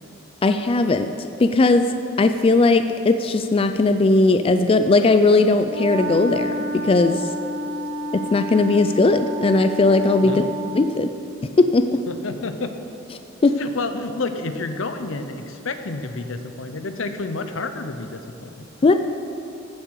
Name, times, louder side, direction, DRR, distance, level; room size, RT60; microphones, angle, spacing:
voice 1, 0.4-1.9 2.2-7.3 8.3-10.4 10.7-11.1 11.6-12.0 13.4-13.6 18.8-18.9, left 3 dB, 30° left, 8 dB, 0.3 m, -18 dB
Wind instrument woodwind instrument, 5.6-11.0, equal, 50° right, 1.2 m, -30 dB
voice 2, 10.2-10.7 12.1-12.7 13.6-18.7, left 3 dB, 75° left, 8 dB, 0.7 m, -30 dB
15.0 x 7.3 x 4.7 m, 2.7 s
head